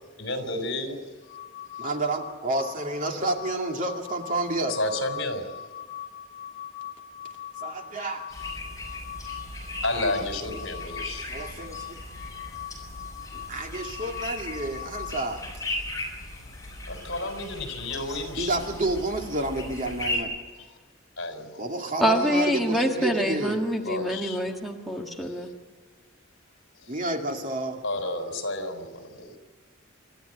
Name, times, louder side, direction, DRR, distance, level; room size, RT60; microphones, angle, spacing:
voice 1, 0.2-1.0 4.7-5.5 9.8-11.5 16.9-18.9 20.6-20.8 21.2-21.8 23.8-24.4 25.2-25.5 26.7-26.9 27.8-29.4, left 2 dB, 65° left, 6 dB, 4.0 m, -32 dB
sound 1, 1.2-15.3, left 10 dB, 45° left, 4.1 m, -41 dB
voice 2, 1.8-4.8 7.6-8.3 11.3-12.0 13.3-15.4 18.4-20.3 21.6-23.7 26.9-27.8, right 2 dB, 40° right, 2 dB, 2.4 m, -30 dB
sound 2, 8.3-20.2, left 1 dB, 15° left, 7.0 m, -37 dB
voice 3, 22.0-25.5, equal, ahead, 1 dB, 1.6 m, -26 dB
28.0 x 13.0 x 9.6 m, 1.4 s
head